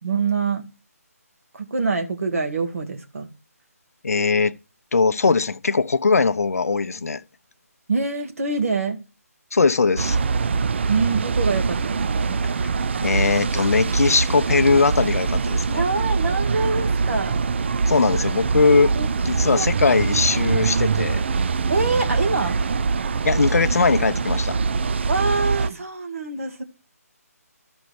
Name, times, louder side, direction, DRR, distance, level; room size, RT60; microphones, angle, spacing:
voice 1, 0.0-0.7 1.5-3.3 7.9-9.0 10.9-12.4 15.7-17.4 19.0-19.1 19.4-19.7 21.7-22.6 25.1-26.6, right 4 dB, 60° right, 2.1 m, -25 dB
voice 2, 4.0-4.5 4.9-7.2 9.5-10.2 13.0-15.8 17.9-18.9 19.2-21.2 23.2-24.6, left 4 dB, 70° left, 0.7 m, -20 dB
sound 1, 10.0-25.7, right 4 dB, 45° right, 0.4 m, -23 dB
13.0 x 5.3 x 4.7 m
figure-of-eight pair, 155°, 8 cm